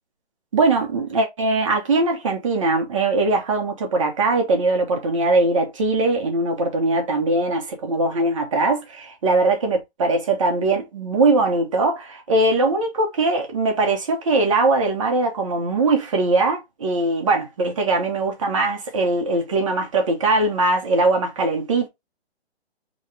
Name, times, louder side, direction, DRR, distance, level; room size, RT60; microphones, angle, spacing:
voice 1, 0.5-21.9, right 2 dB, 30° right, 1.0 m, -21 dB
4.0 x 3.0 x 3.2 m
hypercardioid pair, 170°, 33 cm